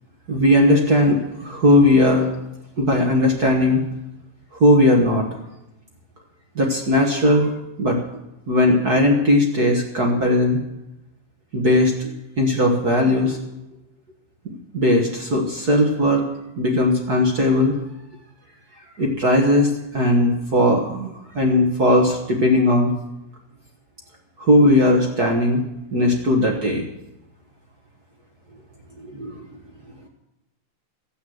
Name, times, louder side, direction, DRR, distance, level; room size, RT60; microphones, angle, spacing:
voice 1, 0.3-2.3 2.8-3.8 4.6-5.2 6.5-7.5 7.8-8.0 8.5-10.6 11.5-13.4 14.4-16.2 16.6-17.8 19.0-22.9 24.4-25.6 25.9-26.9 29.0-29.4, left 1 dB, 45° right, 1 dB, 1.3 m, -18 dB
14.0 x 8.7 x 7.8 m, 0.90 s
omnidirectional pair, 3.7 m